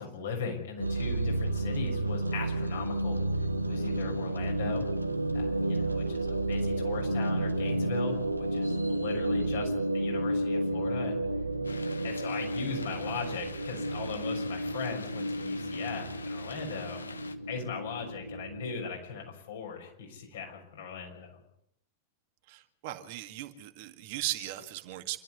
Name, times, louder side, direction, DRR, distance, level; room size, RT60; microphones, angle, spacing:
voice 1, 0.0-3.2 3.7-4.9 5.3-11.2 12.0-17.0 17.5-21.4, left 5 dB, 60° left, 2 dB, 6.3 m, -39 dB
sound 1, 0.8-18.9, right 1 dB, 85° right, 1.3 m, -31 dB
sound 2, 11.6-17.4, left 4 dB, 75° left, 1.4 m, -46 dB
voice 2, 22.5-25.2, right 16 dB, 50° right, 7 dB, 2.0 m, -37 dB
27.0 x 13.0 x 9.6 m, 0.76 s
figure-of-eight pair, 90°, 0 cm